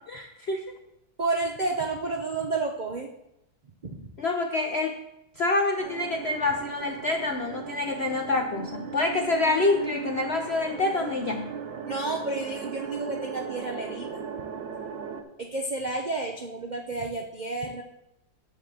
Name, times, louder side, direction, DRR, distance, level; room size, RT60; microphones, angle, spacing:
voice 1, 0.1-0.6 4.2-5.0 5.4-11.5, left 3 dB, 70° left, 4 dB, 0.6 m, -27 dB
voice 2, 1.2-3.1 3.8-4.1 11.9-14.2 15.4-17.8, right 3 dB, 70° right, 1 dB, 0.4 m, -31 dB
sound 1, 5.8-15.2, right 6 dB, 85° right, 1.6 m, -37 dB
10.0 x 4.1 x 7.6 m, 0.85 s
omnidirectional pair, 1.9 m